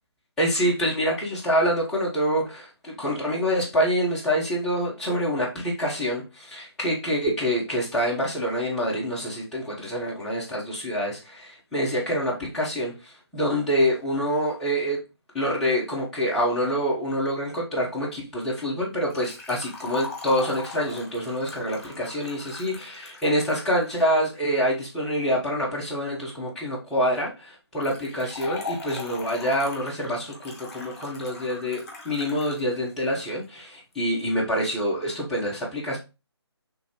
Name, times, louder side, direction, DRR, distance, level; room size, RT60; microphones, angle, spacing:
voice 1, 0.4-15.0 15.3-36.0, equal, 5° left, -7 dB, 0.7 m, -26 dB
Liquid, 19.1-24.1 27.8-32.6 32.9-33.0 33.9-34.0, left 4 dB, 40° left, 1.3 m, -40 dB
4.1 x 3.2 x 2.9 m, 0.28 s
figure-of-eight pair, 145°, 14 cm